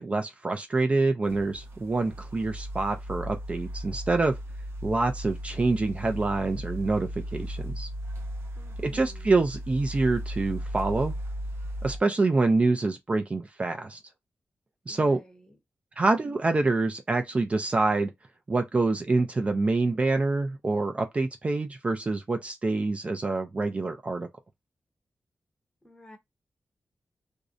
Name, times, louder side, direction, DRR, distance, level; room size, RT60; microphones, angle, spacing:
voice 1, 0.0-4.3 4.8-7.9 8.8-11.1 11.8-14.0 14.9-15.2 16.0-18.1 18.5-24.3, right 3 dB, 30° right, 0.4 m, -26 dB
sound 1, 1.2-12.0, equal, 90° right, 0.7 m, -36 dB
voice 2, 8.6-9.3 14.9-15.5 25.8-26.2, left 1 dB, 15° left, 0.7 m, -51 dB
2.6 x 2.1 x 2.3 m
wide cardioid pair, 105°, 4 cm